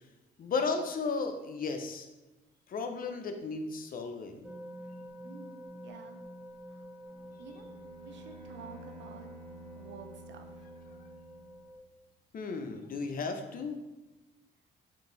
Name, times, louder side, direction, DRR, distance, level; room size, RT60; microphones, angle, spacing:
voice 1, 0.4-2.1 2.7-4.4 12.3-13.8, left 4 dB, 45° left, 6 dB, 0.5 m, -34 dB
sound 1, 4.4-11.8, equal, 5° right, 0.5 m, -48 dB
voice 2, 5.2-6.2 6.7-6.9 7.4-7.7 8.0-9.3 9.7-10.7, right 5 dB, 70° right, 6 dB, 0.5 m, -50 dB
Bowed string instrument, 7.1-11.9, right 1 dB, 10° left, 1.5 m, -52 dB
3.7 x 2.6 x 3.8 m, 1.1 s
cardioid pair, 90°, 20 cm